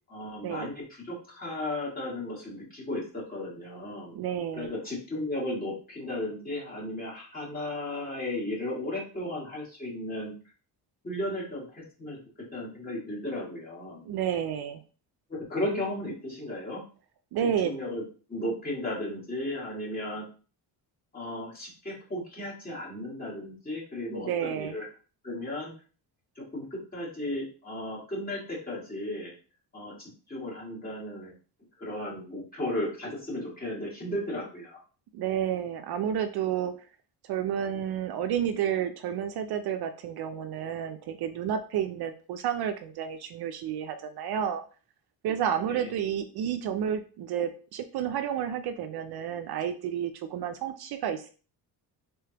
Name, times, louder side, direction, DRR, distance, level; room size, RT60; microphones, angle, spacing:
voice 1, 0.1-4.2 4.5-10.3 11.0-12.2 12.5-14.0 15.3-16.8 17.6-18.0 18.3-20.3 21.1-24.9 25.2-25.7 26.4-29.3 29.7-30.0 30.3-31.3 31.8-34.8 45.6-45.9, left 1 dB, 20° left, -5 dB, 1.9 m, -35 dB
voice 2, 4.1-4.7 14.0-14.8 17.3-17.7 24.1-24.8 35.1-36.7 37.2-44.6 45.2-51.3, right 9 dB, 65° right, 8 dB, 0.5 m, -31 dB
3.6 x 3.4 x 2.9 m, 0.38 s
cardioid pair, 140°, 42 cm